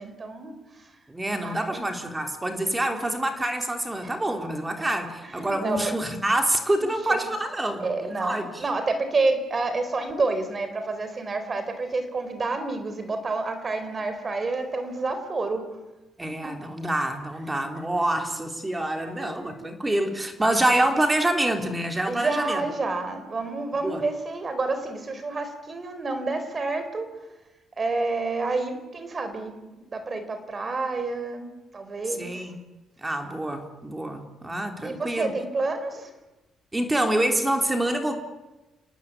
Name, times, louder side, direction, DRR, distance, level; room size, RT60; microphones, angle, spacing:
voice 1, 0.0-0.9 1.3-1.9 4.0-4.2 4.8-4.9 5.2-5.9 6.8-7.2 7.8-15.7 16.2-16.6 17.4-17.7 18.3-18.4 18.8-19.7 22.0-27.1 27.8-32.4 34.8-36.1, right 3 dB, 35° right, 9 dB, 4.5 m, -29 dB
voice 2, 1.1-8.7 16.2-22.6 23.8-24.0 32.2-32.7 33.0-35.3 36.7-38.1, right 1 dB, 15° right, 5 dB, 3.5 m, -26 dB
29.0 x 18.5 x 8.6 m, 1.1 s
cardioid pair, 90°, 0 cm